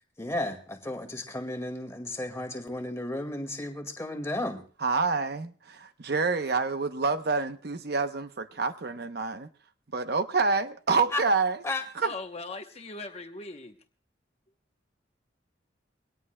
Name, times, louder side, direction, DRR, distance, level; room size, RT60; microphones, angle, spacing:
voice 1, 0.2-4.6 11.1-11.2 11.6-11.8, left 1 dB, 15° left, 1.9 m, -33 dB
voice 2, 4.8-9.5 9.9-11.6 12.0-12.1, right 4 dB, 55° right, 0.8 m, -27 dB
voice 3, 12.0-13.8, left 3 dB, 35° left, 0.9 m, -39 dB
23.0 x 18.0 x 2.2 m
head